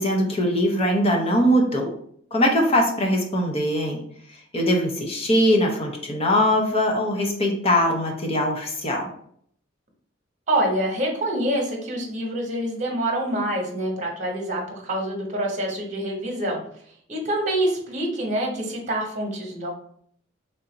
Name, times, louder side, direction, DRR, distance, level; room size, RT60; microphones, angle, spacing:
voice 1, 0.0-1.9 2.3-4.0 4.5-9.1, equal, 30° left, 1 dB, 0.8 m, -21 dB
voice 2, 10.5-16.6 17.1-19.7, right 1 dB, 40° right, 0 dB, 1.1 m, -26 dB
3.4 x 2.7 x 3.9 m, 0.64 s
head